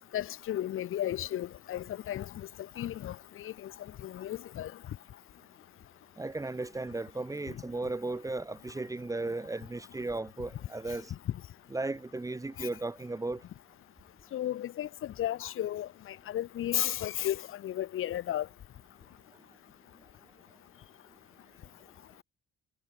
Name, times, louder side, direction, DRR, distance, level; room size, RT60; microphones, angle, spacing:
voice 1, 0.1-2.5 2.8-3.7 4.0-4.7 7.5-7.6 11.3-11.4 12.6-12.7 14.3-18.5, left 12 dB, 45° left, 0.5 m, -34 dB
voice 2, 6.2-11.1 11.7-13.4, right 2 dB, 10° right, 0.6 m, -35 dB
cardioid pair, 90°, 30 cm